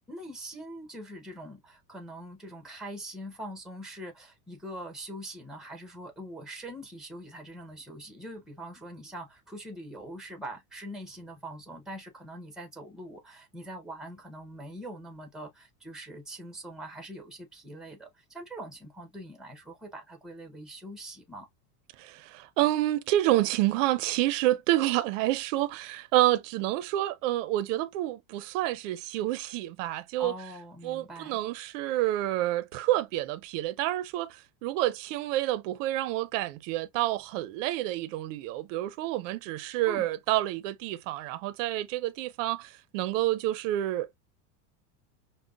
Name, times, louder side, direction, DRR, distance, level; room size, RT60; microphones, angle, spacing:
voice 1, 0.1-21.5 30.2-31.4 39.9-40.1, right 1 dB, ahead, 0.7 m, -43 dB
voice 2, 22.0-30.3 30.8-44.2, right 15 dB, 50° right, 0.5 m, -28 dB
5.0 x 2.1 x 2.3 m
supercardioid pair, 145°, 49 cm